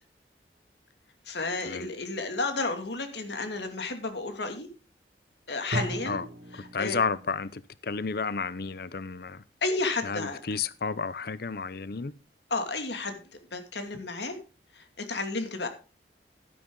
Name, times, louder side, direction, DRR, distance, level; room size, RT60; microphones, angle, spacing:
voice 1, 1.3-4.7 5.5-6.2 6.5-7.0 9.6-10.4 12.5-13.2 13.5-14.4 14.7-15.7, left 3 dB, 75° left, 2.4 m, -32 dB
Drum, 5.7-7.6, right 1 dB, 75° right, 2.2 m, -36 dB
voice 2, 6.7-9.4 10.0-12.1, left 5 dB, 60° left, 0.7 m, -32 dB
11.5 x 11.0 x 3.8 m
head